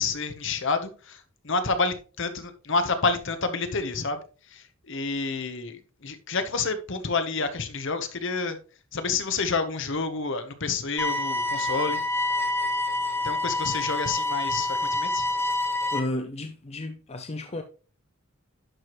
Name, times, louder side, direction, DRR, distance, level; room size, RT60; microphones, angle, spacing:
voice 1, 0.0-4.2 4.5-8.6 8.9-12.0 13.2-15.3, left 4 dB, 60° left, 1.0 m, -29 dB
sound 1, 11.0-16.0, left 2 dB, 10° left, 1.0 m, -27 dB
voice 2, 15.9-17.6, left 1 dB, 30° left, 0.5 m, -32 dB
11.0 x 4.7 x 3.0 m
head